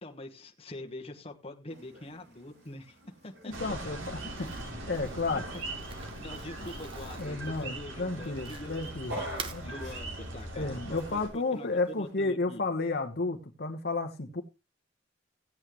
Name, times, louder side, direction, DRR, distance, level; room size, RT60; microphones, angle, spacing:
voice 1, 0.0-2.9 3.2-3.5 5.3-5.4 6.2-8.8 9.1-12.6, left 1 dB, 30° left, 1.2 m, -44 dB
sound 1, 1.7-12.1, right 1 dB, 60° right, 7.6 m, -48 dB
voice 2, 3.4-5.5 7.2-9.2 9.5-9.6 10.5-14.4, left 3 dB, 50° left, 1.1 m, -32 dB
sound 2, 3.5-11.3, right 1 dB, 85° right, 3.4 m, -41 dB
Crumpling crinkling, 4.3-8.9 9.2-9.6, right 5 dB, 25° right, 1.0 m, -46 dB
16.0 x 8.2 x 3.1 m
head